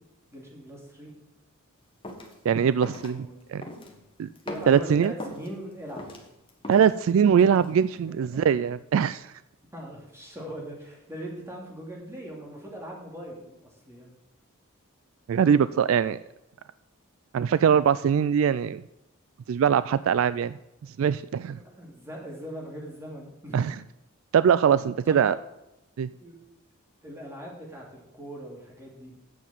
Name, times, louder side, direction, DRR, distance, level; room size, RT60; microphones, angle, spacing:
voice 1, 0.3-1.1 3.0-3.5 4.4-6.1 8.1-8.4 9.7-14.1 21.5-23.7 25.0-25.3 26.2-26.4 27.0-29.1, equal, 10° right, -2 dB, 2.7 m, -40 dB
sound 1, 2.0-2.3 2.8-3.1 3.6-4.0 4.4-5.5 5.9-7.0 7.4-7.7, left 1 dB, 25° left, 1.5 m, -39 dB
voice 2, 2.5-3.3 3.5-3.6 4.2-4.3 4.7-5.1 6.7-9.3 15.3-16.2 17.3-18.8 19.5-21.6 23.5-23.8 24.3-25.4 26.0-26.1, right 7 dB, 65° right, 15 dB, 0.3 m, -22 dB
8.5 x 7.1 x 7.3 m, 0.91 s
head